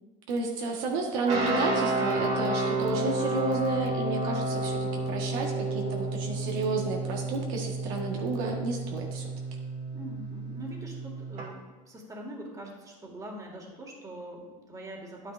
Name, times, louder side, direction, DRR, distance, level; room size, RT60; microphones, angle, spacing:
voice 1, 0.3-4.8 5.1-9.3, right 3 dB, 75° right, 0 dB, 1.5 m, -31 dB
sound 1, 1.3-11.4, right 2 dB, 40° right, 2.0 m, -31 dB
voice 2, 9.9-15.3, right 1 dB, 20° right, 0 dB, 2.0 m, -43 dB
9.7 x 9.2 x 2.6 m, 1.4 s
supercardioid pair, 110°, 17 cm